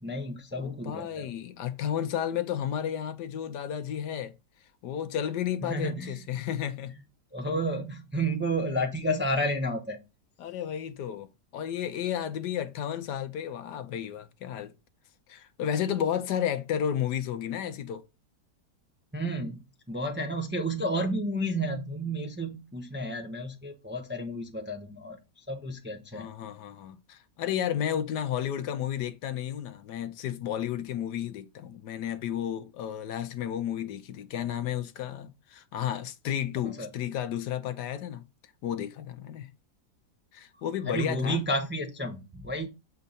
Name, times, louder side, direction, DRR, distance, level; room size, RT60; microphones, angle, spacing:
voice 1, 0.0-1.3 5.7-6.2 7.3-10.0 19.1-19.6 19.9-25.2 25.5-26.3 36.6-36.9 40.9-42.7, right 1 dB, 10° right, 0.6 m, -31 dB
voice 2, 0.5-4.3 4.8-6.9 10.4-14.7 15.3-18.0 26.1-38.2 38.6-39.5 40.3-41.4, left 9 dB, 85° left, 1.4 m, -32 dB
7.0 x 4.5 x 4.0 m
omnidirectional pair, 1.8 m